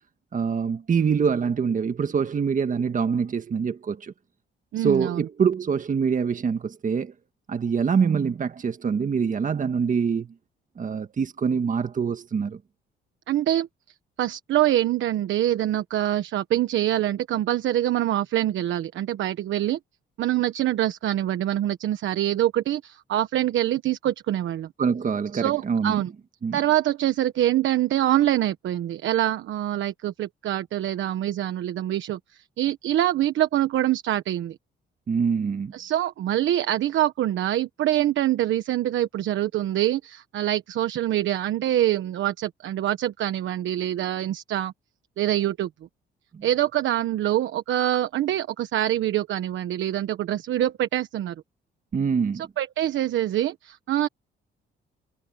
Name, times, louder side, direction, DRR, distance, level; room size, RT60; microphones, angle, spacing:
voice 1, 0.3-4.1 4.8-7.1 7.5-10.3 10.8-12.6 24.8-26.0 26.4-26.6 35.1-35.7 46.3-46.4 51.9-52.4, right 6 dB, 40° right, 1.6 m, -25 dB
voice 2, 4.7-5.3 13.3-13.7 14.2-19.8 20.2-24.7 25.3-26.1 26.5-34.5 35.7-44.7 45.2-45.7 46.4-51.3 52.3-54.1, right 13 dB, 75° right, 1.2 m, -25 dB
cardioid pair, 90°, 20 cm